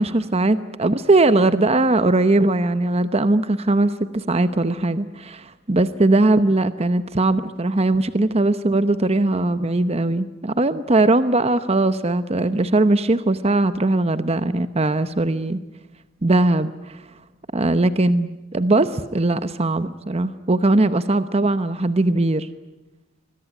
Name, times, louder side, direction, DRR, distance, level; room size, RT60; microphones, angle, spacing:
voice 1, 0.0-15.6 16.2-17.0 17.5-22.5, right 2 dB, 30° right, 12 dB, 0.9 m, -20 dB
26.0 x 22.0 x 9.9 m, 1.0 s
head